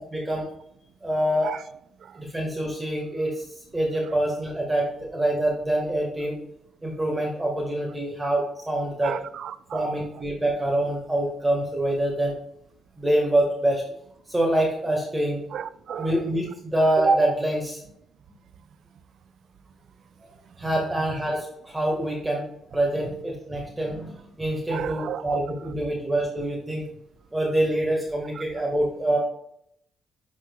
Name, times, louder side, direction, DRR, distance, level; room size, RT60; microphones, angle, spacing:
voice 1, 0.1-0.4 1.0-1.5 2.1-3.4 3.7-6.3 6.8-9.1 9.7-12.3 13.0-13.8 14.3-15.4 16.0-17.8 20.6-22.4 22.7-26.8 27.3-29.2, right 1 dB, 15° right, -2 dB, 1.6 m, -25 dB
voice 2, 9.0-10.0 15.5-16.1 24.7-25.4 28.4-28.5, right 8 dB, 65° right, 14 dB, 0.4 m, -33 dB
10.5 x 4.2 x 2.3 m, 0.72 s
cardioid pair, 90°, 0 cm